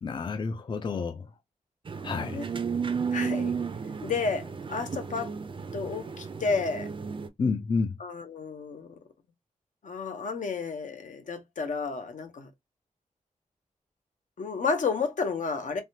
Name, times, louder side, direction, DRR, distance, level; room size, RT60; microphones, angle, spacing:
voice 1, 0.0-1.3 2.0-2.4 7.4-8.0, left 4 dB, 35° left, 0.4 m, -30 dB
sound 1, 1.8-7.3, right 6 dB, 40° right, 0.4 m, -33 dB
voice 2, 3.1-3.5 4.0-5.3 5.7-6.9 8.0-9.0 9.8-12.5 14.4-15.8, left 4 dB, 70° left, 0.7 m, -31 dB
3.3 x 2.2 x 2.7 m
wide cardioid pair, 120°, 13 cm